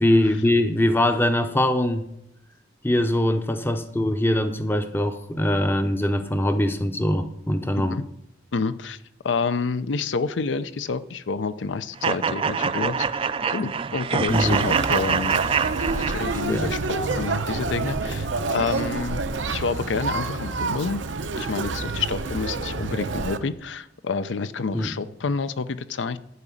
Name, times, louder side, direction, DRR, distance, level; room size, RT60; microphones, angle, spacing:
voice 1, 0.0-2.1 2.8-8.0 14.3-14.6 16.5-16.7 24.7-24.9, left 1 dB, 10° left, 7 dB, 0.6 m, -22 dB
voice 2, 8.5-9.0 9.2-15.4 16.1-21.1 21.3-26.2, left 4 dB, 80° left, 14 dB, 0.6 m, -28 dB
sound 1, 12.0-16.6, right 6 dB, 30° right, 0.3 m, -25 dB
Conversation, 14.3-23.4, right 3 dB, 85° right, 0.8 m, -28 dB
11.0 x 5.0 x 8.3 m, 0.77 s
head